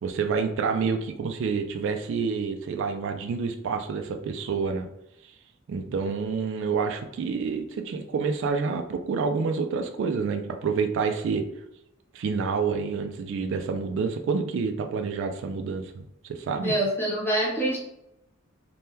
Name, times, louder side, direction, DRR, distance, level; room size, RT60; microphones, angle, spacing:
voice 1, 0.0-4.9 5.2-5.3 5.7-11.4 12.1-16.8, right 5 dB, 60° right, 6 dB, 0.3 m, -28 dB
voice 2, 16.6-17.8, right 1 dB, 10° left, -4 dB, 0.9 m, -25 dB
3.5 x 2.2 x 2.8 m, 0.83 s
head